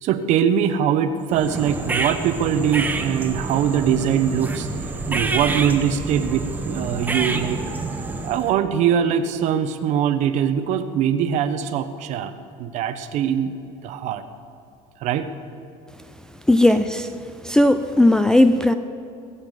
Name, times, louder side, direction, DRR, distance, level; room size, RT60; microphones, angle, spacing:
voice 1, 0.0-4.7 5.1-7.6 8.2-12.3 12.6-13.5 13.8-14.2 15.0-15.3, right 8 dB, 50° right, 10 dB, 0.9 m, -22 dB
sound 1, 1.3-8.6, right 3 dB, 10° right, 0.8 m, -27 dB
voice 2, 16.5-17.1 17.4-18.7, left 1 dB, 5° left, 7 dB, 0.3 m, -16 dB
20.5 x 7.0 x 8.0 m, 2.6 s
cardioid pair, 145°, 15 cm